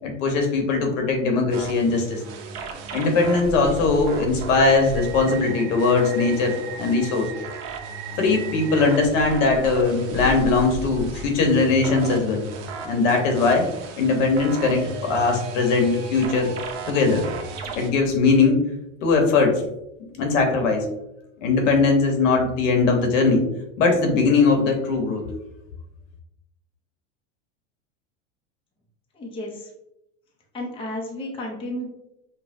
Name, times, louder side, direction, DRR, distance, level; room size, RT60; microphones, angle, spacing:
voice 1, 0.0-2.2 2.9-7.3 8.2-12.4 12.8-13.6 14.0-16.5 16.9-17.2 17.7-18.6 19.0-19.5 20.2-20.9 21.4-23.4 23.8-25.3, left 4 dB, 75° left, 3 dB, 1.2 m, -20 dB
sound 1, 1.5-17.9, right 4 dB, 55° right, 0.7 m, -35 dB
voice 2, 29.1-29.7 30.5-31.9, left 1 dB, 15° left, -1 dB, 0.7 m, -32 dB
5.5 x 2.2 x 2.6 m, 0.86 s
supercardioid pair, 135°, 38 cm